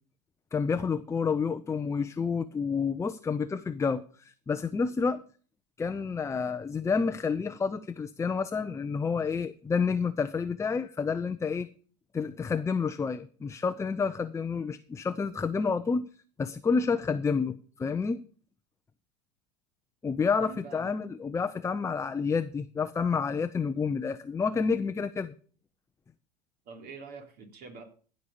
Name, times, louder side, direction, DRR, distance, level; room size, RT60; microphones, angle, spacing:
voice 1, 0.5-5.2 5.8-11.7 12.1-16.1 16.4-18.2 20.0-25.3, left 5 dB, 15° left, 0.6 m, -29 dB
voice 2, 20.4-20.9 26.6-27.8, right 5 dB, 45° right, 3.4 m, -45 dB
16.0 x 5.3 x 7.0 m
hypercardioid pair, 90°, 21 cm